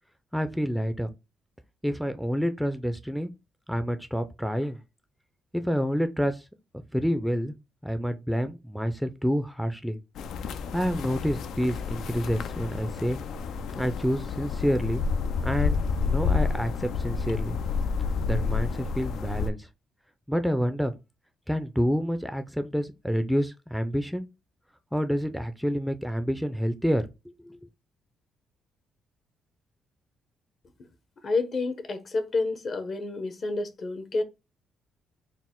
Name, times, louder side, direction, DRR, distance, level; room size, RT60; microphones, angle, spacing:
voice 1, 0.3-1.1 1.8-3.3 3.7-4.8 5.5-6.4 6.9-7.5 7.8-10.0 10.7-13.2 13.7-15.0 15.4-15.8 16.0-17.6 18.3-19.7 20.3-20.9 21.5-24.3 24.9-27.1 27.4-27.6, equal, ahead, 0.4 m, -28 dB
sound 1, 10.2-19.5, left 5 dB, 75° left, 0.4 m, -29 dB
voice 2, 31.2-34.2, left 3 dB, 45° left, 0.8 m, -29 dB
4.0 x 2.1 x 3.7 m
cardioid pair, 90°, 0 cm